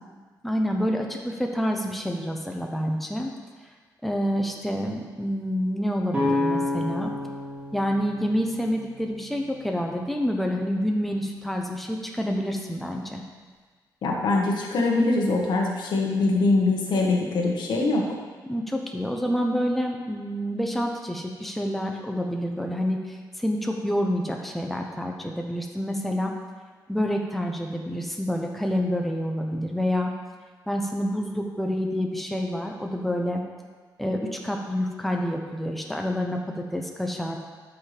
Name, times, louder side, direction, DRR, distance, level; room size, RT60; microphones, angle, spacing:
voice 1, 0.4-3.3 4.0-7.1 7.7-13.2 18.5-26.3 26.9-30.1 30.7-33.4 34.0-37.4, equal, ahead, 1 dB, 0.9 m, -28 dB
sound 1, 6.1-9.9, left 2 dB, 20° right, 2.6 m, -30 dB
voice 2, 14.0-18.0, left 3 dB, 80° left, -1 dB, 1.5 m, -23 dB
12.5 x 5.8 x 3.5 m, 1.5 s
cardioid pair, 115°, 7 cm